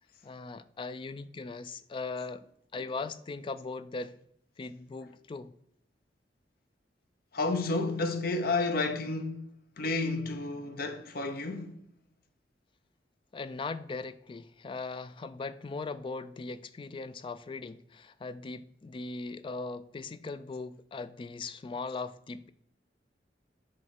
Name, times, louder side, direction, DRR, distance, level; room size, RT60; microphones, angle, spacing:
voice 1, 0.2-2.5 2.7-4.2 4.6-5.5 13.3-22.5, left 3 dB, 30° left, 0.3 m, -39 dB
voice 2, 7.3-11.8, left 3 dB, 55° left, 0.7 m, -31 dB
7.6 x 3.1 x 5.7 m
head